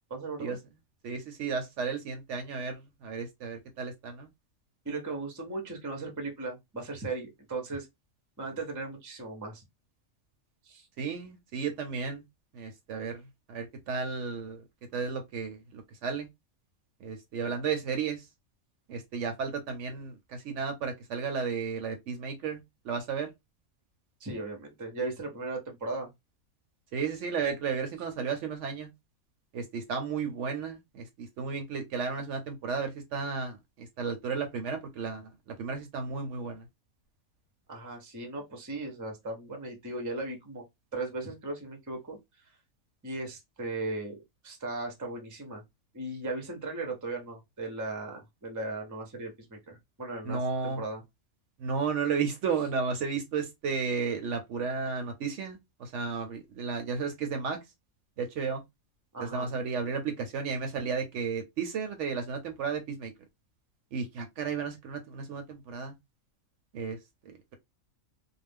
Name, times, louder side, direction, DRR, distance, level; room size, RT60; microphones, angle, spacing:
voice 1, 0.1-0.6 4.8-7.9 8.4-9.6 10.6-10.9 24.2-26.1 37.7-40.6 40.9-42.2 43.0-44.1 44.4-45.6 45.9-51.0 59.1-59.5, right 2 dB, 25° right, 0.4 m, -37 dB
voice 2, 1.0-4.3 11.0-12.2 12.5-13.2 13.5-14.6 14.9-16.3 17.0-18.2 18.9-23.3 26.9-28.9 29.5-36.6 50.2-50.8 51.6-57.6 58.2-58.6 59.2-63.1 63.9-65.9 66.7-67.0 67.3-67.5, right 5 dB, 65° right, 0.8 m, -33 dB
2.4 x 2.0 x 3.3 m
omnidirectional pair, 1.5 m